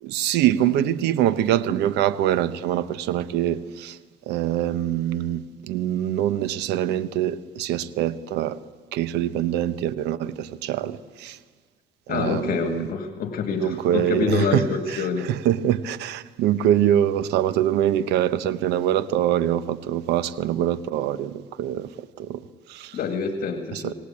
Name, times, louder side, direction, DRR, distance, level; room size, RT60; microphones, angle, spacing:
voice 1, 0.0-4.0 4.3-8.6 8.9-11.4 12.1-12.9 13.5-23.0 23.7-23.9, right 11 dB, 85° right, 1.0 m, -24 dB
voice 2, 12.1-15.3 22.9-23.9, left 5 dB, 60° left, 2.0 m, -26 dB
27.0 x 19.0 x 8.6 m
cardioid pair, 110°, 17 cm